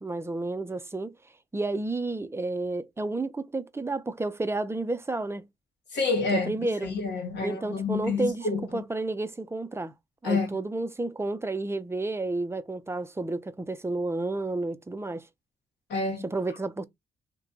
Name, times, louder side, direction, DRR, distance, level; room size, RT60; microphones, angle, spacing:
voice 1, 0.0-1.1 1.5-5.4 6.3-6.9 7.4-9.9 10.2-15.3 16.2-16.9, right 2 dB, 15° right, 0.5 m, -31 dB
voice 2, 5.9-8.8 10.2-10.6 15.9-16.2, left 4 dB, 75° left, 1.2 m, -29 dB
3.1 x 2.2 x 3.7 m
cardioid pair, 85°, 18 cm